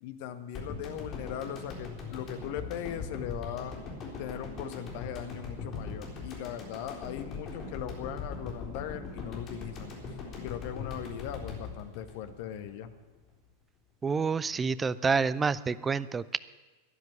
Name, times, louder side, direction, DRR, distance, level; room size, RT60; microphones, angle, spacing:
voice 1, 0.0-3.8 4.2-12.9, left 10 dB, 50° left, 10 dB, 1.3 m, -39 dB
sound 1, 0.5-12.9 13.2-13.3, left 4 dB, 30° left, 3.8 m, -41 dB
voice 2, 14.0-16.4, right 5 dB, 15° right, 17 dB, 0.5 m, -28 dB
12.5 x 10.5 x 9.9 m, 1.2 s
figure-of-eight pair, 90°, 0 cm